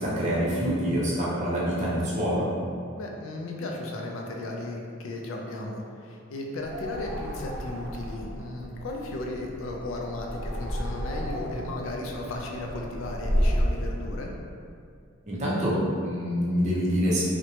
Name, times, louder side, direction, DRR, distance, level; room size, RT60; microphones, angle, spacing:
voice 1, 0.0-2.5 15.3-17.2, equal, 35° right, -7 dB, 0.5 m, -26 dB
voice 2, 3.0-14.3, left 2 dB, 70° left, 0 dB, 0.4 m, -35 dB
sound 1, 6.6-13.9, equal, 65° right, 0.8 m, -31 dB
2.6 x 2.1 x 2.8 m, 2.3 s
head